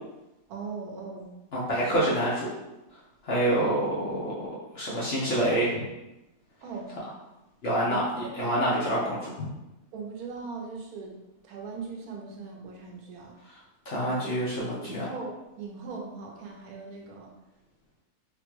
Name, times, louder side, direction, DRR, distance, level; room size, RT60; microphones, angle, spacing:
voice 1, 0.5-1.3 1.8-1.9 6.6-6.9 7.9-8.0 8.4-8.7 9.9-11.1 11.4-13.4 14.0-14.3 14.8-17.3, right 4 dB, 80° right, 0 dB, 1.1 m, -39 dB
voice 2, 1.5-2.5 3.2-4.5 4.7-5.8 7.6-8.0 8.4-9.5 13.9-15.1, right 1 dB, 55° left, -7 dB, 0.7 m, -27 dB
3.5 x 2.1 x 3.0 m, 0.98 s
omnidirectional pair, 1.6 m